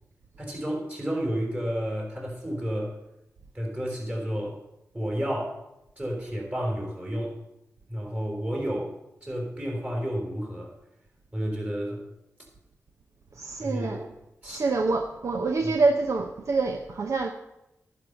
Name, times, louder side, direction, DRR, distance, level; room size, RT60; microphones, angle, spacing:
voice 1, 0.4-3.0 3.5-4.6 4.9-5.6 6.0-7.4 7.9-8.9 9.2-10.7 11.3-12.0 13.6-14.1 14.4-14.6 15.6-15.7, equal, 30° right, 4.3 m, -31 dB
voice 2, 13.4-14.1 14.4-17.3, right 3 dB, 65° right, 0.8 m, -26 dB
10.5 x 5.5 x 8.1 m
cardioid pair, 55°, 5 cm